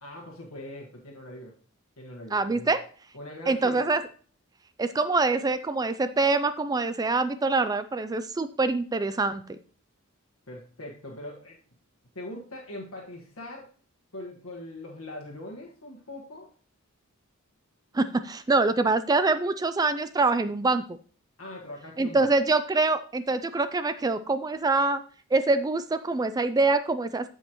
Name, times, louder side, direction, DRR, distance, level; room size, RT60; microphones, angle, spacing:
voice 1, 0.0-1.5 2.0-2.7 3.1-3.8 10.5-11.6 12.1-13.7 14.1-16.5 21.4-22.3, left 1 dB, 85° left, -1 dB, 1.5 m, -41 dB
voice 2, 2.3-2.8 3.5-4.0 4.8-9.6 17.9-21.0 22.0-25.0 25.3-27.3, right 3 dB, 20° right, 11 dB, 0.4 m, -25 dB
14.0 x 5.4 x 3.0 m, 0.42 s
head